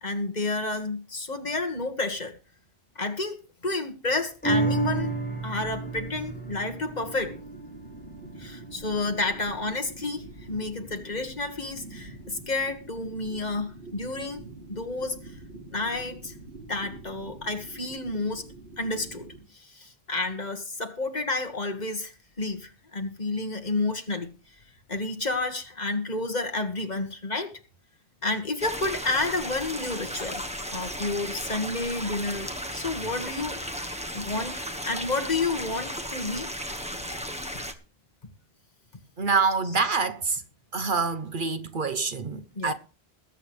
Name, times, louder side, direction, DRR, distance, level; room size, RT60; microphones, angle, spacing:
voice 1, 0.0-2.3 2.9-3.4 3.6-5.2 5.4-7.4 8.4-14.4 14.7-15.2 15.7-16.3 16.7-18.5 18.8-24.3 24.9-27.5 28.2-30.4 30.7-32.5 32.7-34.5 34.8-36.5 42.5-42.7, left 2 dB, 45° left, 1.8 m, -30 dB
sound 1, 4.4-11.1 11.6-11.7, right 3 dB, 10° left, 3.7 m, -32 dB
sound 2, 4.7-19.4, right 2 dB, 75° right, 3.7 m, -45 dB
sound 3, 28.6-37.7, equal, 5° right, 1.3 m, -35 dB
voice 2, 39.2-40.4 40.7-42.7, right 4 dB, 55° right, 1.0 m, -26 dB
21.0 x 8.9 x 3.2 m
omnidirectional pair, 1.0 m